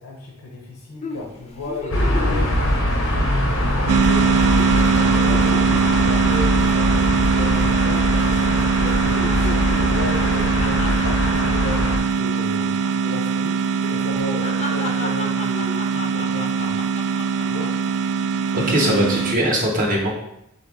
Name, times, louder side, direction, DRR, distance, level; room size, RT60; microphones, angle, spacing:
voice 1, 0.0-2.6 3.0-16.8 17.4-17.8, left 2 dB, 70° left, -1 dB, 0.7 m, -34 dB
sound 1, 1.0-3.5 3.9-4.1 4.4-7.8 8.1-8.5 8.8-12.9 13.2-13.4 13.8-17.9 18.4-18.8, left 2 dB, 30° left, 0.5 m, -35 dB
sound 2, 1.9-12.0, left 1 dB, 90° left, 1.0 m, -22 dB
sound 3, 3.9-19.4, right 6 dB, 85° right, 0.3 m, -21 dB
voice 2, 18.5-20.1, equal, 40° right, -1 dB, 0.7 m, -20 dB
4.1 x 3.4 x 3.5 m, 0.85 s
head